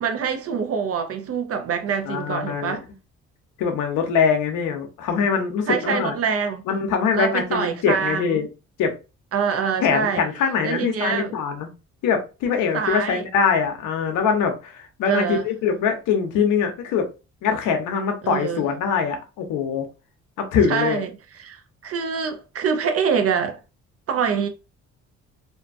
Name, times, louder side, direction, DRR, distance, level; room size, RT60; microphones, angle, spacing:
voice 1, 0.0-2.8 5.7-6.6 7.1-8.4 9.3-10.2 10.6-11.4 12.7-13.3 15.0-15.5 18.2-18.6 20.7-23.6 24.1-24.5, right 6 dB, 50° right, 0.6 m, -25 dB
voice 2, 2.1-2.8 3.6-6.1 6.7-8.5 8.8-8.9 9.8-11.7 12.0-17.1 17.4-19.9 20.4-21.0, left 6 dB, 90° left, 0.7 m, -23 dB
2.6 x 2.2 x 2.5 m
cardioid pair, 90°, 30 cm